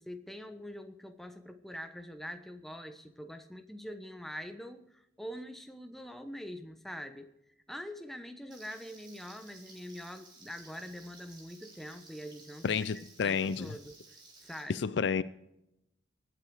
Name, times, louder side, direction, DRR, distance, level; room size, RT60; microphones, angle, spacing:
voice 1, 0.0-7.3 7.7-14.2 14.4-14.9, equal, ahead, 1.0 m, -44 dB
Frying (food), 8.5-14.6, right 3 dB, 25° right, 3.8 m, -56 dB
voice 2, 12.6-13.7 14.7-15.2, left 6 dB, 60° left, 0.4 m, -30 dB
24.5 x 8.7 x 4.8 m
head